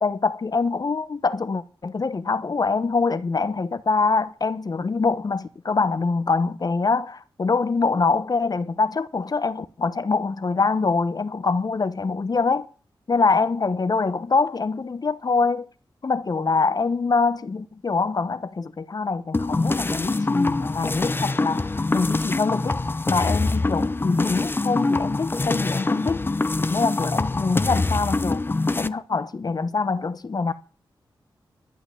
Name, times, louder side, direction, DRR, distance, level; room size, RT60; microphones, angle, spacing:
voice 1, 0.0-12.7 13.1-15.7 16.0-22.8 23.1-26.2 26.7-30.5, left 4 dB, 45° left, 1.0 m, -24 dB
sound 1, 19.3-28.9, left 2 dB, 25° left, 0.6 m, -24 dB
11.5 x 6.0 x 9.2 m
cardioid pair, 60°, 9 cm